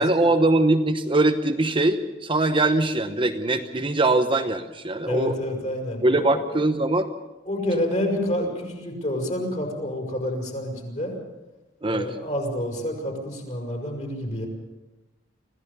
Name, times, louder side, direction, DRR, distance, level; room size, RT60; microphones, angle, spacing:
voice 1, 0.0-5.3 6.0-7.1 11.8-12.1, right 2 dB, 30° right, 6 dB, 1.0 m, -22 dB
voice 2, 5.0-6.4 7.5-11.2 11.8-14.5, left 1 dB, 40° left, 2 dB, 6.3 m, -28 dB
25.5 x 16.0 x 6.9 m, 1.1 s
head